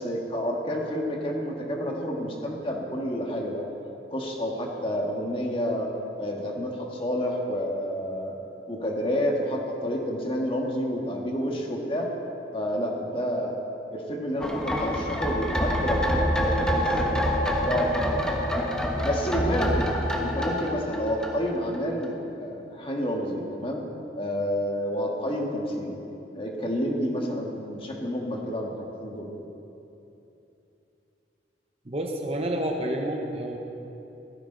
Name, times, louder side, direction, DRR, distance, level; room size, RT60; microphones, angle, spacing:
voice 1, 0.0-3.6 4.1-5.9 6.2-8.4 8.7-12.1 12.5-13.5 13.9-17.2 17.6-18.3 19.0-23.8 24.1-26.0 26.3-28.7 29.0-29.3, equal, 30° left, 0 dB, 1.7 m, -29 dB
sound 1, 14.4-21.8 22.0-22.1, equal, 5° left, 1.2 m, -26 dB
voice 2, 31.9-33.6, right 1 dB, 30° right, 2 dB, 1.0 m, -29 dB
16.0 x 14.5 x 4.0 m, 2.9 s
head